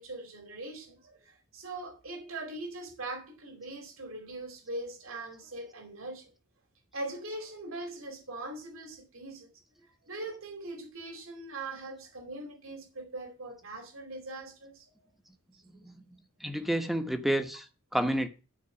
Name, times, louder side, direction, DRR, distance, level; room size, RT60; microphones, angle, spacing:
voice 1, 0.0-6.3 6.9-9.5 10.0-14.9 16.6-16.7, right 2 dB, 70° right, 2.7 m, -41 dB
voice 2, 16.4-17.6 17.9-18.3, right 1 dB, ahead, 1.2 m, -29 dB
12.5 x 4.5 x 7.1 m
head